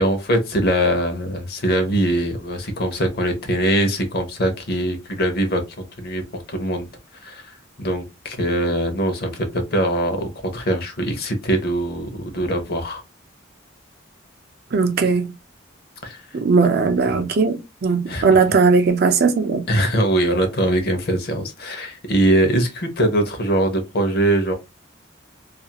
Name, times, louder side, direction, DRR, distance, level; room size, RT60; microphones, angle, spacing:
voice 1, 0.0-6.9 7.2-13.0 16.0-16.3 17.1-17.3 18.1-18.3 19.7-24.5, right 1 dB, 50° left, 0.7 m, -22 dB
voice 2, 14.7-15.3 16.3-19.6, right 4 dB, 50° right, 0.4 m, -18 dB
2.4 x 2.4 x 2.8 m
head